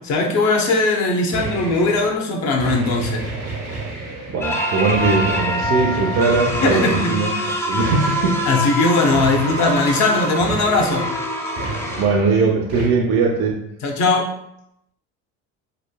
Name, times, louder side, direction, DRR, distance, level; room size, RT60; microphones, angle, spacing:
voice 1, 0.0-3.3 6.5-7.2 8.5-11.1 13.8-14.3, left 3 dB, 55° left, 2 dB, 0.7 m, -19 dB
sound 1, 1.3-2.2 2.6-4.5 4.9-7.3 7.8-8.7 9.1-10.0 10.4-11.2 11.6-12.4 12.7-12.9, right 3 dB, 80° right, 1.0 m, -31 dB
voice 2, 4.3-8.4 11.9-13.6, right 4 dB, 50° right, 1 dB, 0.5 m, -20 dB
sound 2, 4.4-12.0, left 1 dB, 10° left, 0.4 m, -25 dB
3.1 x 2.2 x 2.2 m, 0.77 s
supercardioid pair, 80°, 33 cm